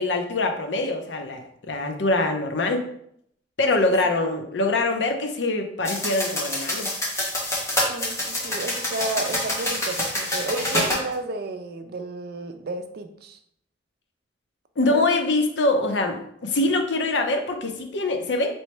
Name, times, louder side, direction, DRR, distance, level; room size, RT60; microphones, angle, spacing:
voice 1, 0.0-2.9 3.6-6.9 14.8-18.5, left 2 dB, 75° left, 4 dB, 0.6 m, -24 dB
sound 1, 5.8-11.0, left 1 dB, 15° left, 1.0 m, -27 dB
voice 2, 7.9-13.4, right 2 dB, 60° right, 7 dB, 0.4 m, -32 dB
3.1 x 3.1 x 4.4 m, 0.70 s
head